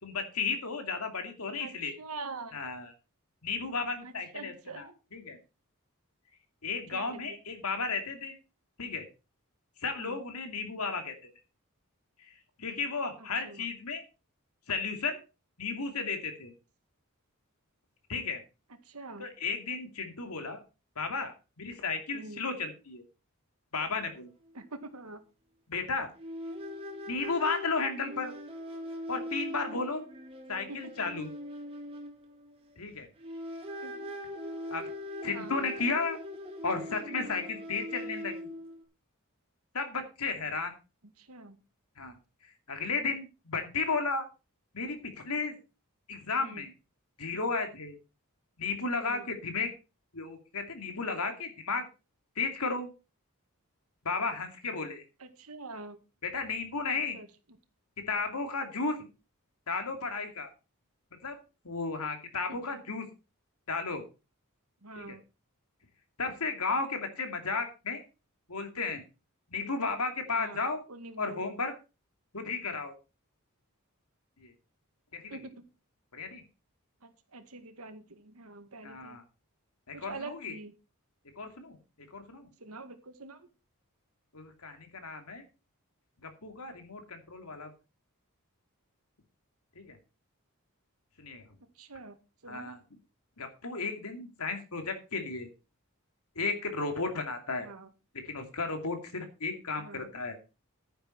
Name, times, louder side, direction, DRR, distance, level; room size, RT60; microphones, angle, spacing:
voice 1, 0.0-1.9 2.5-2.9 3.4-5.4 6.6-8.3 8.8-9.1 9.8-11.1 12.3-14.0 14.7-15.2 15.6-16.5 18.1-18.4 19.2-20.6 21.0-23.0 23.7-24.3 25.7-26.1 27.1-28.3 29.1-30.0 30.5-31.3 32.8-33.1 34.7-34.9 35.2-36.2 36.6-38.5 39.7-40.8 42.0-42.1 42.7-44.3 44.7-45.0 45.2-45.6 46.1-46.7 47.2-47.9 48.6-49.7 50.1-51.8 52.4-52.9 54.0-55.0 56.2-57.2 58.1-59.1 59.7-60.5 61.2-61.4 61.6-63.1 63.7-64.0 64.9-65.2 66.2-68.0 68.5-69.0 69.5-70.8 71.2-71.7 72.3-72.9 74.4-74.5 75.1-75.4 76.1-76.4 78.8-79.2 79.9-80.5 81.4-81.8 82.1-82.5 84.3-85.4 86.2-87.7 89.8-90.0 91.2-91.5 92.5-92.8 93.4-95.5 96.4-97.7 98.2-100.4, left 4 dB, 80° left, 6 dB, 2.6 m, -34 dB
voice 2, 1.6-2.6 4.0-4.9 6.9-7.4 10.0-10.2 13.4-13.7 18.8-19.3 22.1-22.4 24.6-25.2 30.7-30.9 33.8-34.1 35.3-35.7 41.2-41.6 46.4-46.6 49.1-49.3 55.2-56.0 57.1-57.3 62.5-62.8 64.8-65.2 70.3-70.6 70.9-71.5 75.3-75.6 77.0-79.2 79.9-80.7 82.6-83.5 91.8-92.2 92.4-92.7 97.6-97.9 99.8-100.1, right 3 dB, 80° right, 8 dB, 1.9 m, -45 dB
sound 1, 24.0-24.1 24.5-24.6 26.2-32.8 33.2-38.8, equal, 25° right, 2.2 m, -41 dB
10.5 x 9.9 x 4.5 m, 0.31 s
head